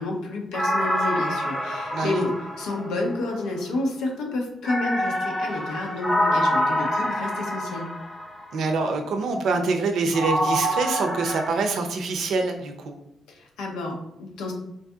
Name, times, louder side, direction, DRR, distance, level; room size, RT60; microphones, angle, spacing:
voice 1, 0.0-7.9 13.3-14.5, left 2 dB, 85° left, 1 dB, 0.7 m, -30 dB
sound 1, 0.5-3.4 4.6-8.5 10.1-11.5, equal, 15° left, 0.8 m, -26 dB
voice 2, 1.9-2.2 8.5-12.9, right 3 dB, 70° right, 4 dB, 0.5 m, -25 dB
3.9 x 2.6 x 2.3 m, 0.85 s
cardioid pair, 90°, 0 cm